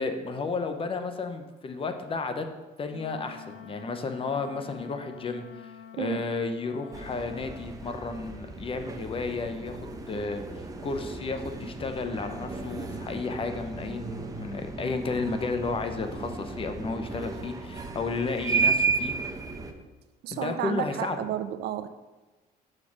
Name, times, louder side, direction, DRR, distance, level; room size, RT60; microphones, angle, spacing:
voice 1, 0.0-2.5 2.8-10.4 10.8-19.1 20.3-21.2, left 4 dB, 35° left, 7 dB, 0.7 m, -32 dB
Wind instrument woodwind instrument, 2.9-7.7, left 8 dB, 80° left, 0.8 m, -47 dB
sound 1, 6.9-19.7, right 4 dB, 20° right, 0.7 m, -33 dB
voice 2, 20.2-21.9, right 11 dB, 70° right, 11 dB, 0.5 m, -32 dB
6.7 x 4.3 x 5.8 m, 1.2 s
cardioid pair, 110°, 17 cm